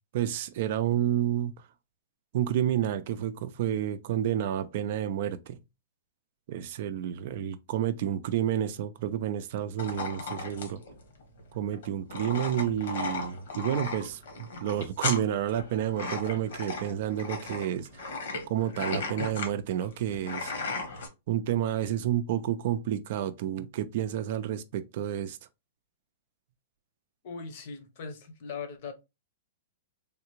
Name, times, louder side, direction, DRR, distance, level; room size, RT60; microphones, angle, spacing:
voice 1, 0.1-1.5 2.3-5.6 6.5-10.8 11.5-18.1 18.5-20.5 21.3-25.4, right 11 dB, 55° right, 0.4 m, -30 dB
sound 1, 9.8-21.1, left 3 dB, 75° left, 1.2 m, -36 dB
voice 2, 27.2-28.9, left 5 dB, 50° left, 0.8 m, -39 dB
3.4 x 2.4 x 3.0 m
hypercardioid pair, 145°, 0 cm